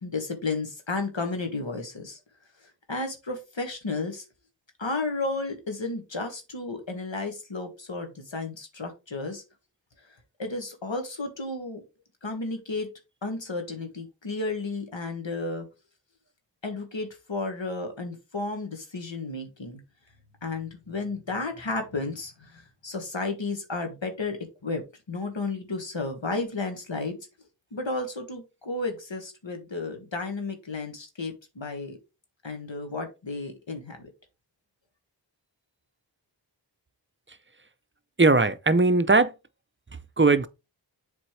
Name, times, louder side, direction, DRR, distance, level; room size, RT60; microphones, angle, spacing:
voice 1, 0.0-2.2 2.9-4.2 4.8-9.4 10.4-11.8 12.2-12.9 13.2-15.7 16.6-19.8 20.4-27.2 27.7-32.0 32.4-34.1, left 3 dB, 90° left, 1.7 m, -33 dB
voice 2, 38.2-39.3 40.2-40.5, right 3 dB, 25° right, 0.6 m, -19 dB
7.6 x 4.3 x 3.3 m
wide cardioid pair, 40°, 44 cm